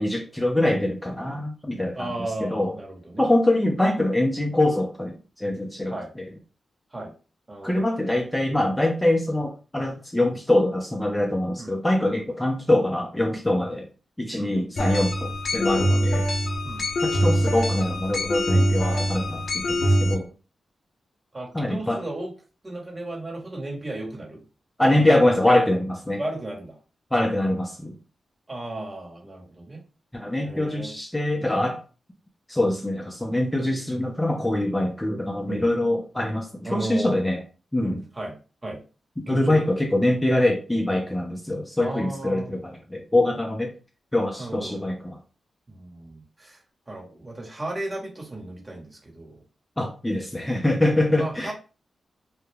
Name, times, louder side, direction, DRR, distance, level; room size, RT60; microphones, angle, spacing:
voice 1, 0.0-2.1 2.4-2.7 3.2-6.3 7.6-13.9 14.2-16.3 17.0-20.3 21.5-22.0 24.8-26.2 27.1-28.0 30.1-31.8 32.5-37.4 37.7-38.0 39.2-43.7 44.1-45.2 49.8-51.5, left 1 dB, 15° left, 2 dB, 0.5 m, -24 dB
voice 2, 2.0-3.3 5.9-6.1 6.9-7.1 7.5-7.9 11.6-11.7 12.1-12.2 14.4-14.5 15.9-16.0 16.6-16.8 21.3-22.3 22.6-24.4 25.0-25.2 26.2-26.8 28.5-29.8 30.4-30.9 35.5-35.7 36.6-37.2 37.8-38.4 38.6-38.8 39.3-39.7 41.8-42.5 44.4-44.8 45.7-46.6 46.9-49.4 51.2-51.5, right 2 dB, 30° right, -1 dB, 1.1 m, -34 dB
sound 1, 14.8-20.1, equal, 60° left, 0.6 m, -23 dB
2.3 x 2.1 x 3.2 m, 0.35 s
supercardioid pair, 40°, 0 cm